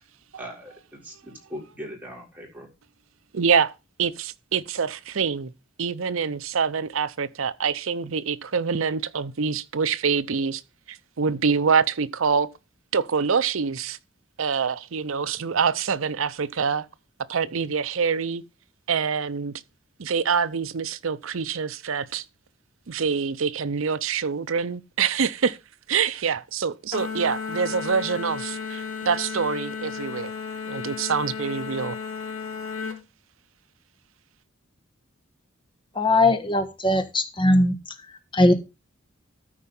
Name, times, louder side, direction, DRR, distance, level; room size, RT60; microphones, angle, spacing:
voice 1, 0.4-2.7, equal, 10° right, 3.9 m, -40 dB
voice 2, 3.3-3.7 4.0-5.5 5.8-10.6 10.9-12.5 12.9-14.0 14.4-16.9 17.3-18.4 18.9-19.6 20.0-22.2 22.9-25.6 25.9-30.3 30.7-32.0, right 6 dB, 70° right, 0.6 m, -25 dB
sound 1, 26.9-33.0, left 5 dB, 85° left, 2.9 m, -33 dB
voice 3, 35.9-37.7 38.3-38.5, left 1 dB, 25° left, 1.3 m, -19 dB
13.0 x 4.8 x 5.4 m
head